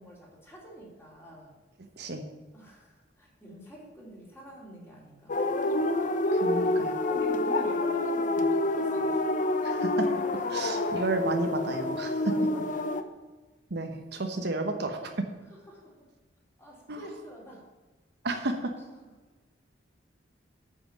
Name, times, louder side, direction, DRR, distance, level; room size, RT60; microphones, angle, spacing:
voice 1, 0.0-1.5 2.5-5.4 7.1-9.3 10.3-10.4 12.3-12.9 15.5-15.9 16.6-17.6, equal, 15° left, -4 dB, 3.4 m, -46 dB
sound 1, 5.3-13.0, left 2 dB, 45° left, 0.8 m, -27 dB
voice 2, 6.3-6.9 9.6-10.1 10.5-12.3 13.7-15.1 16.9-17.0 18.2-18.7, right 2 dB, 65° right, 5 dB, 1.1 m, -32 dB
9.2 x 5.9 x 7.4 m, 1.2 s
head